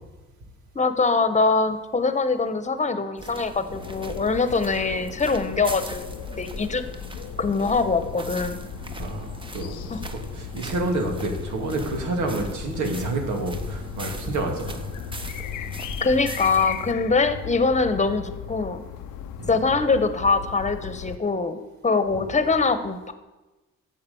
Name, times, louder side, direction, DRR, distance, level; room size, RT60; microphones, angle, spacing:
voice 1, 0.7-6.1 6.4-6.8 7.4-8.6 9.9-10.0 16.0-18.8 19.5-23.1, left 4 dB, 25° left, 11 dB, 1.2 m, -23 dB
sound 1, 3.2-16.9, right 1 dB, 15° right, 1.0 m, -39 dB
sound 2, 3.7-21.2, left 9 dB, 85° left, 0.7 m, -37 dB
voice 2, 9.0-9.8 10.1-14.9 19.4-19.5, right 2 dB, 75° right, 2 dB, 2.6 m, -29 dB
11.5 x 7.9 x 7.1 m, 1.1 s
cardioid pair, 90°, 30 cm